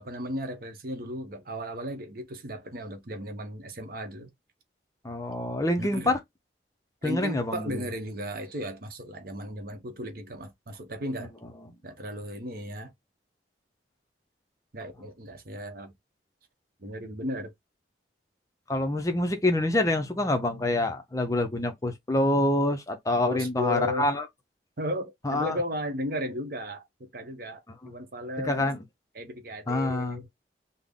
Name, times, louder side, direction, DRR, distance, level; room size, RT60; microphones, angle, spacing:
voice 1, 0.0-4.3 5.8-6.1 7.0-11.3 11.8-12.9 14.7-15.9 16.8-17.5 23.3-24.1 24.8-28.7 29.1-30.3, equal, 55° right, 0.8 m, -35 dB
voice 2, 5.0-6.2 7.0-7.8 11.6-11.7 18.7-24.3 25.2-25.6 27.8-27.9 28.4-28.8 29.7-30.2, left 1 dB, 20° left, 0.5 m, -26 dB
3.7 x 2.0 x 3.5 m
head